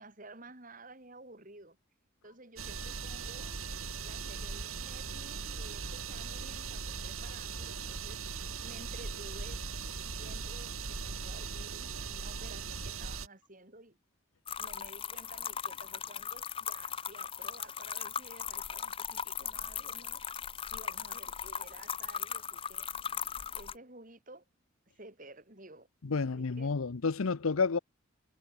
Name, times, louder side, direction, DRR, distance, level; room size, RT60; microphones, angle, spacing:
voice 1, 0.0-1.8 2.2-3.6 4.0-9.6 10.0-14.0 14.6-20.2 20.7-22.9 23.5-24.4 24.9-25.9 26.2-26.7, right 2 dB, 40° right, 3.4 m, -53 dB
sound 1, 2.6-13.3, right 5 dB, 85° right, 3.1 m, -39 dB
sound 2, 14.5-23.7, left 8 dB, 25° left, 0.6 m, -38 dB
voice 2, 26.0-27.8, left 4 dB, 85° left, 0.7 m, -30 dB
head